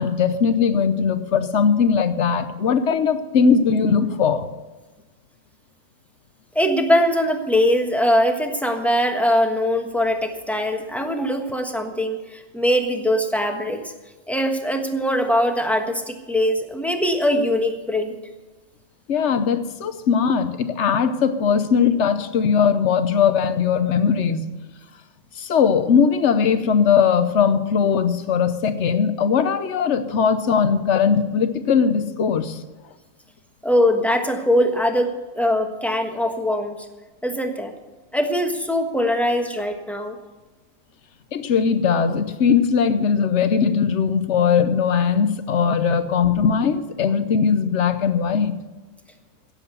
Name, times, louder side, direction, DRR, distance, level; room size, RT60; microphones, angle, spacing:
voice 1, 0.0-4.5 19.1-24.5 25.4-32.6 41.3-48.6, left 6 dB, 60° left, 11 dB, 1.1 m, -19 dB
voice 2, 6.5-13.8 14.3-18.1 33.6-36.8 37.2-37.7 38.1-40.2, equal, ahead, 4 dB, 1.2 m, -21 dB
16.5 x 7.7 x 6.9 m, 1.2 s
omnidirectional pair, 1.4 m